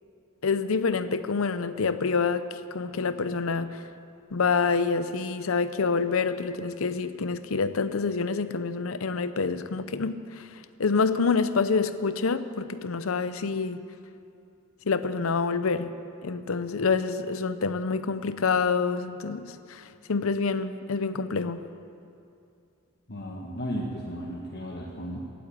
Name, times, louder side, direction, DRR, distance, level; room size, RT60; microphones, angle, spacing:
voice 1, 0.4-3.8 4.3-13.8 14.9-15.9 16.2-21.6, left 4 dB, 70° left, 12 dB, 0.7 m, -27 dB
voice 2, 23.1-25.2, equal, 50° left, -3 dB, 1.4 m, -34 dB
17.0 x 8.6 x 8.5 m, 2.5 s
head